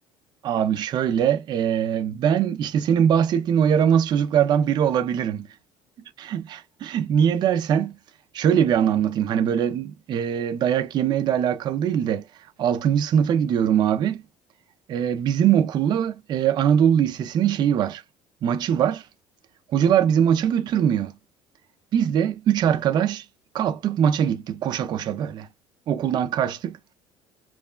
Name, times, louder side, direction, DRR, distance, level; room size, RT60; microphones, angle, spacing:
voice 1, 0.4-5.5 6.3-8.0 8.3-12.2 12.6-14.2 14.9-18.0 18.4-19.0 19.7-21.1 21.9-23.2 23.5-25.5 25.9-26.8, right 9 dB, 35° right, 0.4 m, -22 dB
3.0 x 2.2 x 2.2 m
cardioid pair, 155°, 12 cm